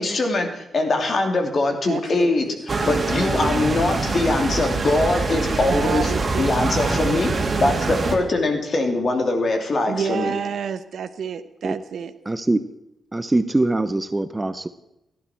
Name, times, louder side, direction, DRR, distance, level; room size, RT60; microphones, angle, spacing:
voice 1, 0.0-6.1 6.4-7.3 7.6-10.3, left 2 dB, 50° left, 4 dB, 2.9 m, -22 dB
voice 2, 1.9-2.3 5.5-7.0 9.9-12.2, right 7 dB, 70° right, 12 dB, 0.9 m, -29 dB
sound 1, 2.7-8.1, right 3 dB, 40° right, 2.6 m, -24 dB
voice 3, 12.3-12.6 13.1-14.7, right 2 dB, 15° right, 12 dB, 0.7 m, -22 dB
17.0 x 12.0 x 4.5 m, 0.89 s
cardioid pair, 90°, 0 cm